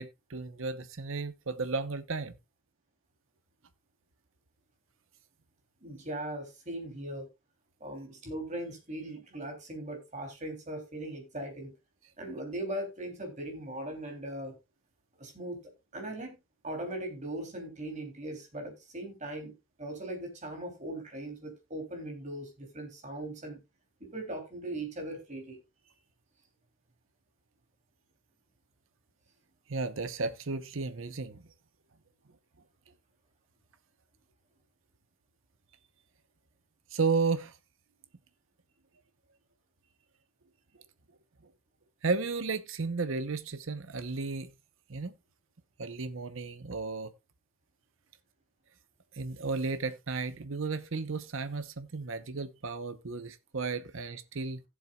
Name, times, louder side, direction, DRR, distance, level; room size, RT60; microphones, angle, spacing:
voice 1, 0.0-2.4 29.7-31.4 36.9-37.6 42.0-44.5 44.9-45.1 45.8-47.1 49.1-54.6, right 4 dB, 70° right, 0.9 m, -33 dB
voice 2, 5.8-7.3 7.8-11.7 12.2-14.6 15.2-15.6 15.9-16.4 16.6-19.5 19.8-23.6 24.0-25.6, right 1 dB, 35° right, 3.1 m, -39 dB
16.5 x 7.5 x 2.3 m
head